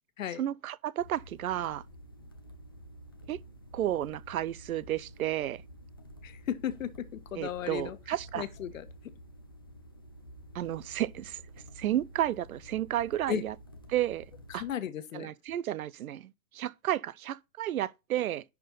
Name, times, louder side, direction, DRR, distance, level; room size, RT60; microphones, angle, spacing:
voice 1, 0.4-1.8 3.3-3.4 3.7-5.6 7.4-8.4 10.5-11.4 11.8-13.5 13.9-14.3 14.5-14.6 15.1-18.4, right 12 dB, 65° right, 0.6 m, -32 dB
sound 1, 1.0-14.7, equal, 15° left, 0.3 m, -51 dB
voice 2, 6.2-8.0 8.3-8.8 13.3-13.5 14.5-15.3, left 10 dB, 60° left, 1.3 m, -35 dB
10.5 x 4.4 x 4.0 m
hypercardioid pair, 155°, 45 cm